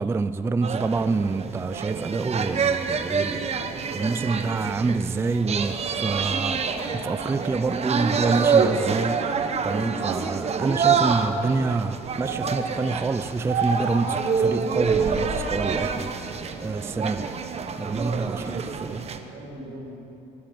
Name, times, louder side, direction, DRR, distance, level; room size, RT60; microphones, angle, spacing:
voice 1, 0.0-3.4 3.9-6.6 6.9-9.2 9.6-17.3 17.8-18.6 18.9-19.0, right 4 dB, 15° right, 0.3 m, -27 dB
sound 1, 0.6-19.2, right 5 dB, 40° right, 1.0 m, -27 dB
sound 2, 5.7-8.9 9.3-10.2 10.6-11.2 12.2-12.7 13.5-14.0 14.8-15.8 16.3-17.3 17.7-18.4, right 4 dB, 60° right, 2.8 m, -33 dB
voice 2, 17.9-18.6 19.0-20.0, right 1 dB, 85° right, 4.6 m, -41 dB
16.5 x 9.4 x 9.0 m
cardioid pair, 110°, 17 cm